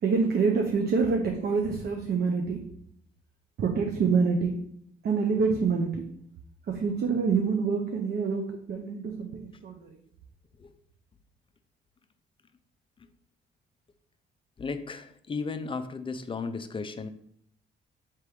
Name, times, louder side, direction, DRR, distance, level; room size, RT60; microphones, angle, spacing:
voice 1, 0.0-2.6 3.6-4.6 5.0-6.0 6.7-9.9, right 5 dB, 55° right, 3 dB, 0.6 m, -26 dB
voice 2, 14.6-17.1, left 4 dB, 25° left, 10 dB, 0.4 m, -35 dB
3.4 x 2.9 x 4.7 m, 0.70 s
cardioid pair, 90°, 20 cm